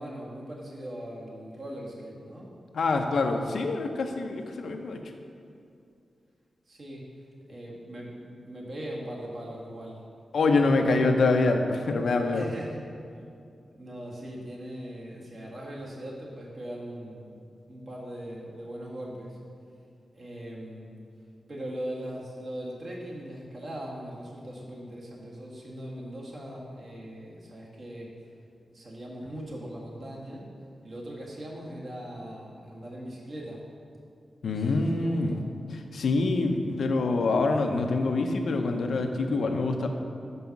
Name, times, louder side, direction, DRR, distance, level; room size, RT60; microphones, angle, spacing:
voice 1, 0.0-2.5 6.7-7.1 7.5-10.0 10.5-11.2 12.3-12.8 13.7-17.4 17.7-19.4 20.1-21.0 21.5-28.1 28.7-30.5 30.8-33.6 34.4-35.4, right 1 dB, 55° right, -4 dB, 1.6 m, -40 dB
voice 2, 2.7-5.0 10.3-12.5 34.4-35.4 35.7-39.9, left 3 dB, 75° left, 4 dB, 0.6 m, -25 dB
5.5 x 5.3 x 5.9 m, 2.4 s
wide cardioid pair, 90°, 0 cm